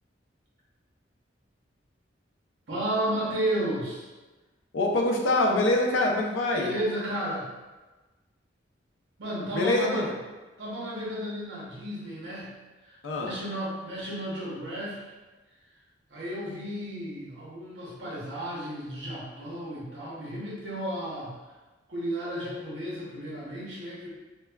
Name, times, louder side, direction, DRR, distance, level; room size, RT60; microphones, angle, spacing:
voice 1, 2.7-4.1 6.5-7.5 9.2-10.1 10.6-12.5 12.8-13.0 13.2-15.1 16.1-21.3 21.9-24.1, right 1 dB, 65° right, -7 dB, 0.8 m, -33 dB
voice 2, 4.7-6.7 9.5-10.1 13.0-13.3, left 2 dB, 85° left, 0 dB, 0.4 m, -24 dB
3.2 x 2.2 x 2.2 m, 1.2 s
head